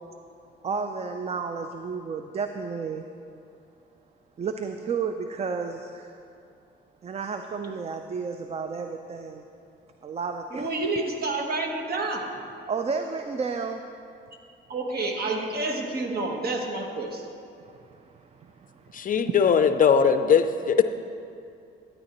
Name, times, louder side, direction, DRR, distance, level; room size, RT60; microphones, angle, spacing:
voice 1, 0.6-3.0 4.4-6.1 7.0-9.4 10.0-10.7 12.7-13.8 17.6-19.3, right 5 dB, 30° right, 6 dB, 0.4 m, -32 dB
voice 2, 10.5-12.3 14.7-17.3, right 2 dB, 50° right, 2 dB, 1.3 m, -29 dB
voice 3, 18.9-20.8, left 6 dB, 45° left, 9 dB, 0.4 m, -20 dB
12.5 x 9.5 x 3.0 m, 2.6 s
cardioid pair, 90°, 20 cm